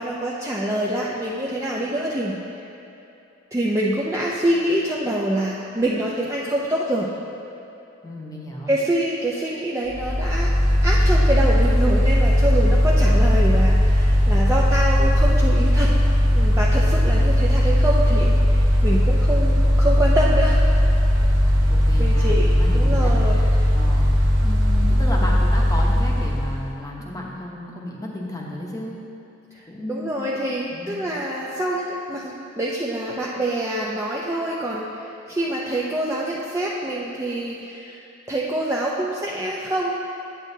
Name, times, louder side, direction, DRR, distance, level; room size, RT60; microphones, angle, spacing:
voice 1, 0.0-2.4 3.5-7.1 8.7-10.5 10.8-15.9 16.3-20.6 22.0-23.7 29.5-38.0 38.3-39.9, right 1 dB, 15° right, -5 dB, 0.5 m, -25 dB
voice 2, 8.0-8.7 21.7-29.0 29.7-30.3 30.7-31.0, left 1 dB, 20° left, -2 dB, 0.9 m, -33 dB
Mechanical fan, 9.9-26.8, equal, 80° right, 1.0 m, -18 dB
9.0 x 8.8 x 2.7 m, 2.8 s
head